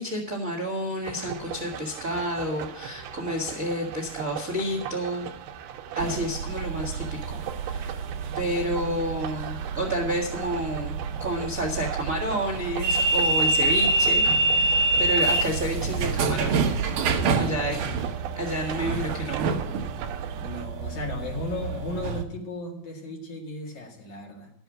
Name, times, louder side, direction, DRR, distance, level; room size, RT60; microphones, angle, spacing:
voice 1, 0.0-5.3 5.9-7.2 7.6-7.9 8.3-10.9 11.2-14.2 14.5-16.6 17.4-17.8 18.3-19.6, equal, 40° right, -1 dB, 1.2 m, -30 dB
sound 1, 1.0-20.7, right 9 dB, 85° right, 2.7 m, -39 dB
sound 2, 6.0-22.2, right 3 dB, 65° right, 2.3 m, -27 dB
voice 2, 17.5-18.1 20.4-24.5, left 2 dB, 55° left, -1 dB, 3.1 m, -36 dB
12.5 x 7.9 x 6.1 m, 0.76 s
omnidirectional pair, 4.5 m